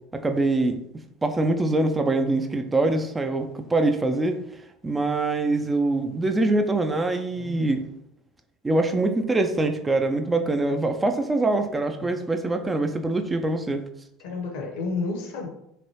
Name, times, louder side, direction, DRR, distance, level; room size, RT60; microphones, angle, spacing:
voice 1, 0.1-0.8 1.2-4.4 4.8-7.8 8.6-13.8, right 2 dB, 15° right, 6 dB, 0.3 m, -24 dB
voice 2, 14.2-15.5, left 3 dB, 60° left, 2 dB, 0.7 m, -31 dB
3.2 x 2.6 x 2.8 m, 0.80 s
figure-of-eight pair, 70°, 0 cm